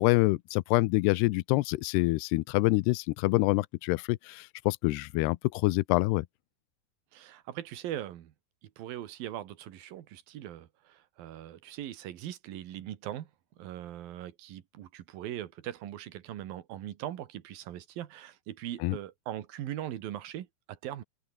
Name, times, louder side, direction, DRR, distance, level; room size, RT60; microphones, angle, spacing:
voice 1, 0.0-6.3 18.8-19.0, left 21 dB, 80° left, 2.5 m, -26 dB
voice 2, 7.1-8.3 8.6-13.3 13.6-21.0, right 12 dB, 65° right, 2.9 m, -40 dB
open air
omnidirectional pair, 5.2 m